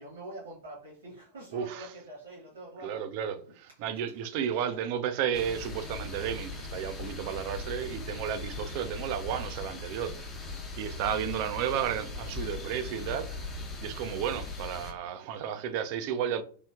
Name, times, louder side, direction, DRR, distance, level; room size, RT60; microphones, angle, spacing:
voice 1, 0.0-3.0 3.7-3.9 4.3-4.7 12.4-12.5, right 1 dB, 70° right, 1.1 m, -46 dB
voice 2, 1.5-1.9 2.8-10.2 10.8-13.4 13.8-16.4, right 9 dB, 45° right, 0.4 m, -33 dB
sound 1, 5.3-14.9, left 2 dB, 25° left, 0.6 m, -39 dB
3.1 x 2.3 x 2.3 m
figure-of-eight pair, 95°, 0 cm